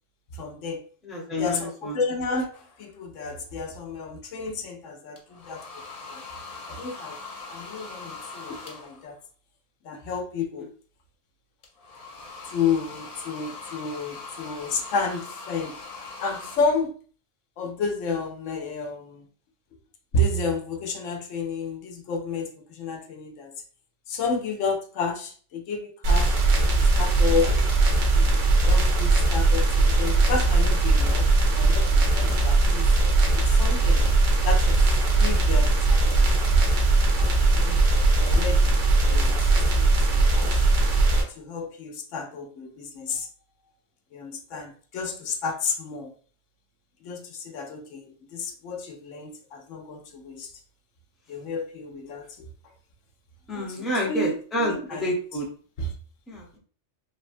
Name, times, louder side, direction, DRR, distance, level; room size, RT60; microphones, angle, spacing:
voice 1, 0.3-0.9 1.3-6.2 6.7-7.2 7.5-9.2 9.8-10.7 12.5-15.8 16.2-17.0 17.6-19.2 20.1-23.5 24.1-26.4 26.8-27.6 28.1-32.9 33.4-34.1 34.4-34.8 35.2-36.6 37.2-37.8 38.1-38.8 39.1-40.7 41.3-43.3 44.1-46.1 47.0-50.5 51.3-52.5 53.5-55.1 55.8-55.9, left 3 dB, 90° left, 4 dB, 1.0 m, -31 dB
voice 2, 1.0-2.0 10.6-10.7 32.4-32.5 53.5-55.4 56.3-56.6, left 1 dB, ahead, -2 dB, 0.5 m, -29 dB
sound 1, 2.5-2.8 5.2-9.2 11.6-16.6, left 3 dB, 55° left, 0.4 m, -41 dB
sound 2, 26.0-41.2, right 2 dB, 85° right, 1.1 m, -20 dB
3.3 x 2.1 x 2.5 m, 0.42 s
omnidirectional pair, 1.3 m